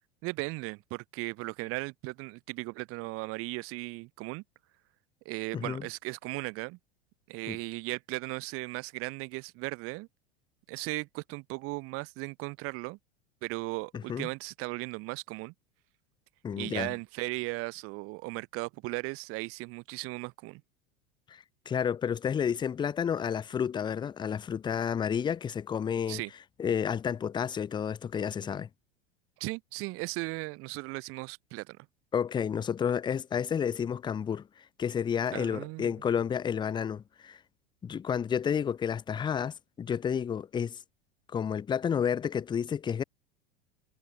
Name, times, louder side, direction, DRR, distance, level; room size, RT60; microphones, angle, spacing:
voice 1, 0.2-4.4 5.2-6.8 7.3-10.1 10.7-13.0 13.4-15.5 16.6-20.6 26.1-26.3 29.4-31.9 35.3-35.9, right 24 dB, 45° right, 0.9 m, -37 dB
voice 2, 5.5-5.9 7.5-7.6 13.9-14.3 16.4-16.9 21.3-26.2 26.6-28.7 32.1-37.4 37.8-40.8 41.3-43.0, left 7 dB, 15° left, 0.5 m, -31 dB
hypercardioid pair, 90°, 31 cm